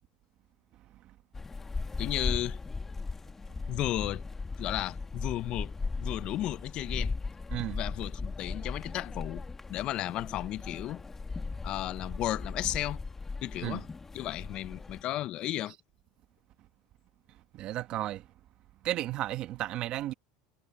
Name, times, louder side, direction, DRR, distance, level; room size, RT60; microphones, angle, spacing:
sound 1, 1.3-15.0, left 4 dB, 15° left, 1.6 m, -37 dB
voice 1, 2.0-2.6 3.7-4.2 4.6-5.7 6.0-7.1 7.7-9.4 9.7-11.0 11.6-13.0 13.4-13.9 14.1-15.8, left 14 dB, 45° left, 0.6 m, -34 dB
voice 2, 17.5-18.3 18.8-20.1, right 14 dB, 50° right, 1.2 m, -33 dB
supercardioid pair, 115°, 2 cm